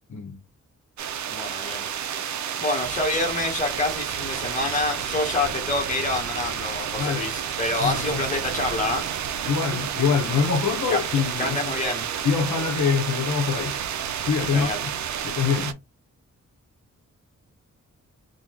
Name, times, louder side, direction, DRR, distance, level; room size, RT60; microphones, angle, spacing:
voice 1, 0.1-0.4 7.0-7.3 7.8-8.3 9.4-11.6 12.2-13.8 14.3-14.7 15.2-15.8, left 6 dB, 65° left, 0.8 m, -24 dB
sound 1, 1.0-15.7, right 8 dB, 65° right, 0.5 m, -30 dB
voice 2, 1.3-1.9 2.6-9.1 10.9-11.0 11.4-12.1 14.5-14.8, left 2 dB, 25° left, 1.1 m, -27 dB
3.6 x 2.2 x 3.0 m
wide cardioid pair, 160°, 31 cm